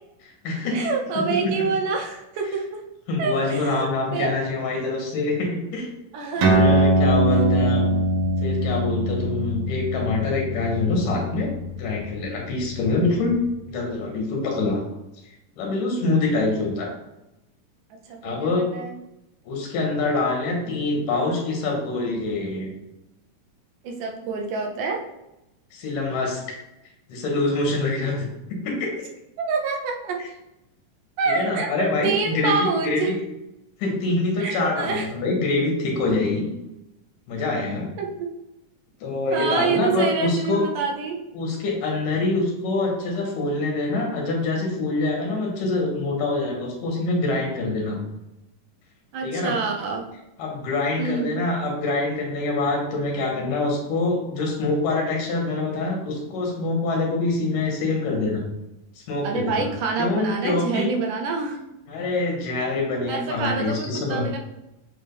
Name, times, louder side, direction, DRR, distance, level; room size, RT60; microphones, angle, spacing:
voice 1, 0.2-0.8 3.1-5.9 6.4-8.0 8.4-11.5 11.8-13.4 13.7-14.8 15.6-16.9 18.2-18.7 19.5-22.7 25.7-26.4 27.1-28.3 28.6-28.9 31.3-33.2 33.8-36.4 37.3-37.9 39.0-40.6 41.3-48.0 49.2-49.5 50.4-58.5 59.1-59.7 60.0-60.9 61.9-64.3, left 2 dB, 85° left, -1 dB, 3.0 m, -25 dB
voice 2, 0.7-2.8 3.2-4.3 6.1-6.9 18.1-18.9 23.8-25.1 29.4-30.2 31.2-33.2 34.4-35.1 37.4-37.5 38.0-38.3 39.3-41.2 49.1-50.0 51.0-51.4 59.2-61.6 63.1-64.4, right 4 dB, 80° right, 2 dB, 2.3 m, -27 dB
sound 1, 6.4-13.3, right 1 dB, 60° right, 2.0 m, -22 dB
7.1 x 4.6 x 3.4 m, 0.90 s
omnidirectional pair, 3.7 m